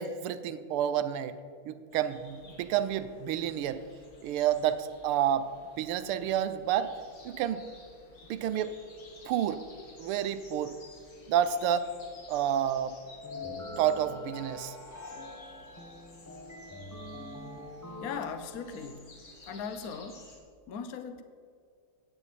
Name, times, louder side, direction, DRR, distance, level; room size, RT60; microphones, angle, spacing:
voice 1, 0.0-1.3 1.7-3.8 4.2-5.5 5.8-6.9 7.2-7.6 8.3-8.7 9.2-9.6 10.0-10.8 11.3-11.9 12.3-12.9 13.8-14.8, right 10 dB, 85° right, 12 dB, 1.6 m, -29 dB
sound 1, 1.9-20.4, left 2 dB, 90° left, 3.1 m, -55 dB
sound 2, 13.2-18.9, left 2 dB, 20° left, 0.5 m, -43 dB
voice 2, 18.0-19.1 19.5-20.3 20.7-21.2, left 6 dB, 65° left, 9 dB, 0.9 m, -38 dB
15.0 x 9.9 x 4.2 m, 2.1 s
omnidirectional pair, 2.4 m